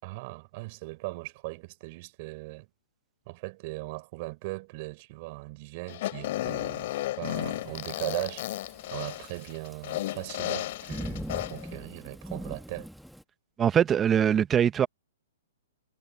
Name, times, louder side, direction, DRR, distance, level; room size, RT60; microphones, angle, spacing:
voice 1, 0.0-2.7 3.3-6.9 7.2-8.5 8.9-12.9, right 24 dB, 45° right, 6.0 m, -38 dB
Fart, 5.9-11.7, left 15 dB, 50° left, 6.1 m, -34 dB
Thunderstorm / Rain, 7.3-13.2, equal, ahead, 2.0 m, -42 dB
voice 2, 13.6-14.9, right 8 dB, 20° right, 1.1 m, -22 dB
hypercardioid pair, 135°, 0 cm